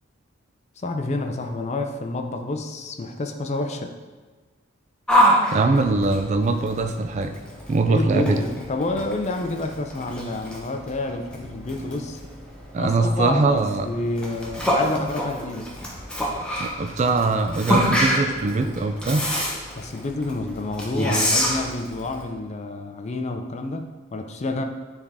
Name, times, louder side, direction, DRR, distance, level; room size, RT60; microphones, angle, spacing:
voice 1, 0.8-3.9 7.9-12.2 12.8-15.7 19.8-24.6, left 2 dB, 35° left, 5 dB, 0.5 m, -29 dB
Yell, 5.1-22.2, equal, 5° left, 0.8 m, -26 dB
voice 2, 5.5-7.3 7.7-8.4 12.7-13.9 16.6-19.3, right 3 dB, 35° right, 6 dB, 0.3 m, -22 dB
9.4 x 3.6 x 3.4 m, 1.4 s
head